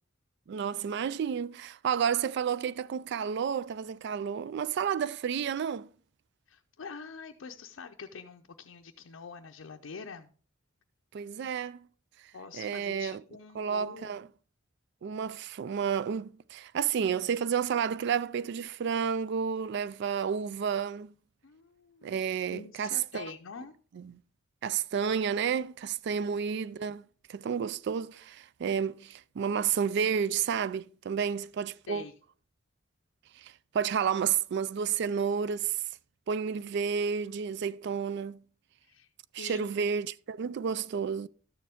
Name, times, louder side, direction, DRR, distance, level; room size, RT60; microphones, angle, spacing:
voice 1, 0.5-5.9 11.1-11.9 12.5-13.2 13.6-14.3 15.0-21.1 22.0-23.2 23.9-24.2 24.6-32.1 33.4-35.8 36.3-38.4 39.3-41.3, right 7 dB, 55° right, 0.3 m, -31 dB
voice 2, 6.5-10.3 12.3-14.2 21.4-23.7 31.2-31.3 31.9-32.1 38.8-39.1 39.4-39.7, left 5 dB, 75° left, 0.5 m, -45 dB
12.5 x 6.8 x 3.5 m
head